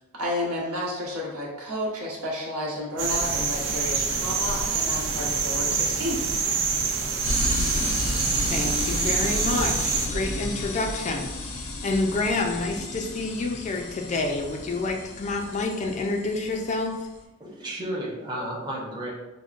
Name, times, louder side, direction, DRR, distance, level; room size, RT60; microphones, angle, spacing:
voice 1, 0.2-6.2, left 1 dB, 90° right, -4 dB, 1.0 m, -31 dB
sound 1, 3.0-10.1, right 5 dB, 60° right, 0.5 m, -26 dB
sound 2, 7.2-17.2, left 2 dB, 75° left, 0.6 m, -33 dB
voice 2, 8.5-17.1, left 2 dB, 30° left, 2 dB, 0.3 m, -28 dB
voice 3, 17.4-19.1, right 1 dB, 20° right, -4 dB, 0.7 m, -33 dB
5.1 x 2.1 x 2.4 m, 1.1 s
head